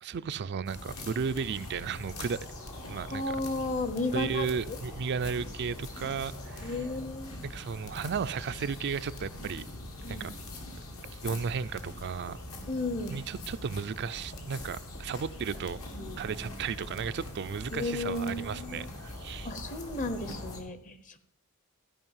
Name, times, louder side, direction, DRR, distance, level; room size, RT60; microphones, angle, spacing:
voice 1, 0.0-2.5 2.8-3.4 4.1-6.8 7.4-9.6 10.1-10.3 11.1-12.4 13.1-15.8 16.2-19.5, right 6 dB, 50° right, 12 dB, 0.4 m, -34 dB
sound 1, 0.7-20.6, left 1 dB, 75° left, 2.1 m, -43 dB
voice 2, 3.1-4.5 6.6-7.4 10.0-10.3 12.7-13.2 15.9-16.2 17.7-18.9 19.4-21.2, left 2 dB, 35° left, 11 dB, 0.9 m, -34 dB
13.5 x 5.3 x 7.3 m, 0.78 s
head